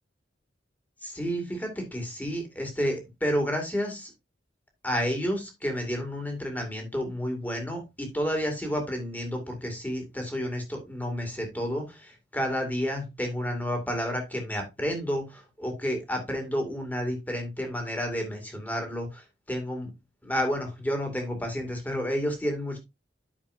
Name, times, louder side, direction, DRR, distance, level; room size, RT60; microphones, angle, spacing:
voice 1, 1.0-4.1 4.8-19.9 20.2-22.8, equal, 10° left, 2.4 m, -30 dB
9.7 x 6.8 x 2.7 m
head